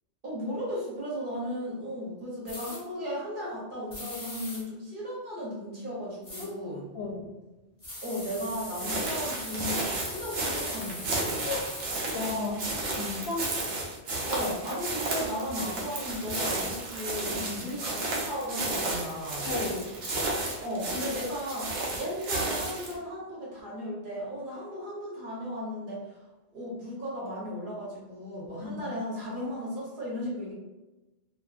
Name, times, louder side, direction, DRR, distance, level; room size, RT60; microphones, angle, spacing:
voice 1, 0.2-6.9 8.0-11.5 14.3-19.5 20.6-26.2 26.5-30.5, equal, 50° right, -5 dB, 0.9 m, -35 dB
sound 1, 2.5-2.8 3.9-4.6 6.2-6.5 7.8-11.9, left 1 dB, 25° left, 0.6 m, -41 dB
voice 2, 6.9-7.3 11.4-11.7 12.1-13.6 17.4-17.7 19.4-20.0 28.6-28.8, left 3 dB, 65° left, -1 dB, 0.7 m, -34 dB
footsteps grass, 8.8-23.0, right 2 dB, 75° right, 1.0 m, -33 dB
2.6 x 2.5 x 2.3 m, 1.1 s
omnidirectional pair, 1.2 m